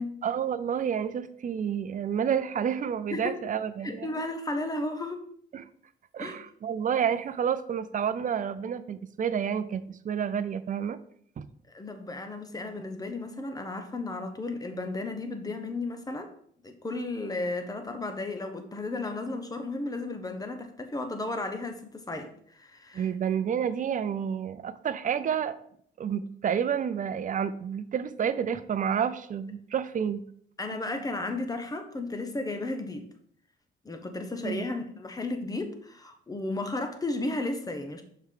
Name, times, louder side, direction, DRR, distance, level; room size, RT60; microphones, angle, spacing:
voice 1, 0.2-4.2 5.5-5.7 6.1-11.0 11.4-11.5 22.9-25.5 26.0-30.2 30.7-30.8 34.4-34.7, right 8 dB, 40° right, 13 dB, 0.5 m, -29 dB
voice 2, 3.8-5.2 6.2-6.4 11.7-16.3 16.6-23.1 30.6-33.0 33.8-38.0, left 2 dB, 20° left, 6 dB, 1.0 m, -34 dB
6.5 x 4.6 x 3.7 m, 0.64 s
cardioid pair, 90°, 20 cm